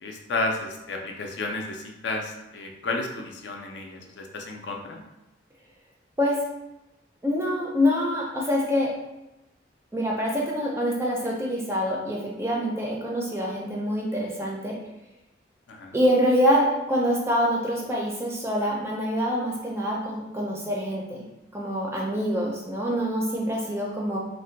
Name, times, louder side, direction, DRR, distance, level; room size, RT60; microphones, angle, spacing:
voice 1, 0.0-5.0 15.7-16.0, left 2 dB, 60° left, 2 dB, 0.4 m, -32 dB
voice 2, 7.2-8.9 9.9-14.8 15.9-21.3 21.5-24.2, equal, 15° right, -3 dB, 0.4 m, -25 dB
2.5 x 2.1 x 3.8 m, 0.95 s
head